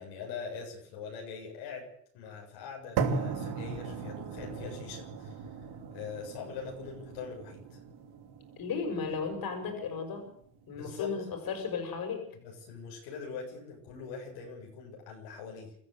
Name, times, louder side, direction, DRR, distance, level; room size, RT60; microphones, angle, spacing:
voice 1, 0.0-5.5 5.9-7.8 10.7-11.1 12.4-15.8, left 5 dB, 85° left, 0 dB, 7.2 m, -43 dB
sound 1, 3.0-11.0, right 5 dB, 65° right, 3.1 m, -38 dB
voice 2, 8.6-10.3 10.7-12.3, left 5 dB, 55° left, 5 dB, 6.8 m, -35 dB
25.5 x 13.5 x 8.0 m, 0.66 s
supercardioid pair, 95°, 41 cm